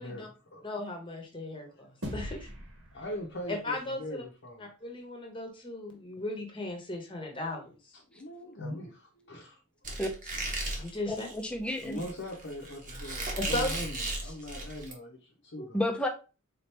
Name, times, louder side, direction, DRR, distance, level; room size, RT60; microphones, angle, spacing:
voice 1, 0.0-0.6 1.4-1.9 2.9-4.7 7.9-9.6 11.8-15.8, left 1 dB, 55° left, 0.8 m, -41 dB
voice 2, 0.6-2.5 3.5-4.2 4.6-7.7 8.6-8.7 10.8-11.3 13.4-13.7 15.6-15.7, left 2 dB, 25° left, 1.0 m, -36 dB
sound 1, 2.0-4.6, equal, 70° right, 1.3 m, -43 dB
Squeak, 9.8-14.9, right 2 dB, 35° right, 1.0 m, -36 dB
voice 3, 11.1-12.0 15.7-16.1, left 1 dB, 5° left, 0.6 m, -31 dB
3.9 x 2.9 x 3.3 m
head